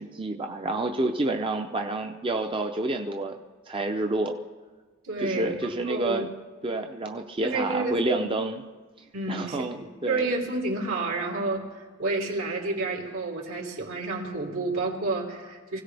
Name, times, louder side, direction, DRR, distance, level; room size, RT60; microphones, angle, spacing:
voice 1, 0.0-3.3 3.7-4.3 5.2-6.3 6.6-8.6 9.3-10.3, right 2 dB, 25° right, 3 dB, 0.6 m, -29 dB
voice 2, 5.0-5.6 5.9-6.3 7.4-8.2 9.1-9.7 10.1-15.8, right 3 dB, 80° right, -2 dB, 3.3 m, -30 dB
25.0 x 16.5 x 3.4 m, 1.4 s
head